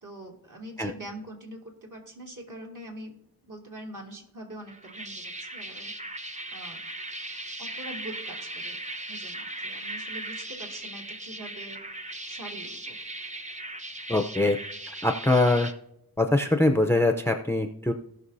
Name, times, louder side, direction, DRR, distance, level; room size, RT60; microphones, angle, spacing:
voice 1, 0.0-3.1 3.4-6.8 7.6-8.8 9.1-11.8 12.3-13.0, right 1 dB, 55° right, 0 dB, 2.6 m, -43 dB
sound 1, 4.7-15.7, right 2 dB, 20° right, 1.0 m, -38 dB
voice 2, 14.1-14.6 15.0-15.7 16.2-17.9, left 2 dB, 5° left, 5 dB, 0.6 m, -23 dB
17.5 x 6.0 x 2.7 m, 0.77 s
wide cardioid pair, 60°, 38 cm